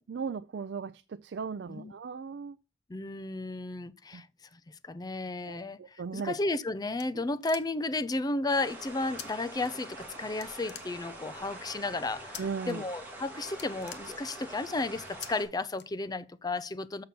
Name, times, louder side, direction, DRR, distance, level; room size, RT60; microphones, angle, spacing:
voice 1, 0.1-2.6 4.1-4.2 5.5-6.4 12.4-12.8, right 5 dB, 70° right, 0.4 m, -37 dB
voice 2, 2.9-4.3 4.5-17.0, left 2 dB, 20° left, 0.4 m, -33 dB
sound 1, 6.7-8.0 9.2-9.3 9.6-10.1 10.4-11.4 12.3-12.7 13.1-13.2 13.5-14.6 15.2-15.3 15.7-16.4, left 10 dB, 65° left, 0.9 m, -46 dB
sound 2, 8.5-15.4, right 2 dB, 10° right, 3.5 m, -45 dB
6.7 x 6.6 x 5.9 m
head